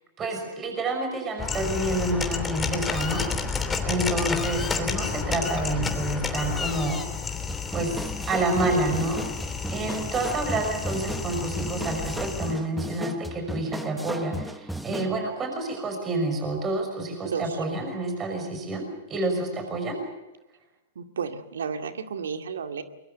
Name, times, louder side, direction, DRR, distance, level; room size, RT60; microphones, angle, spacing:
voice 1, 0.2-3.2 3.8-7.0 7.7-18.8 19.1-20.0, right 2 dB, 25° right, 4 dB, 6.0 m, -28 dB
sound 1, 1.4-12.5, left 5 dB, 15° left, 3.1 m, -31 dB
sound 2, 7.5-15.2, right 1 dB, ahead, 1.0 m, -36 dB
voice 2, 17.2-17.6 21.0-22.8, right 6 dB, 80° right, 6 dB, 2.1 m, -32 dB
23.0 x 22.0 x 8.1 m, 1.0 s
hypercardioid pair, 115°, 0 cm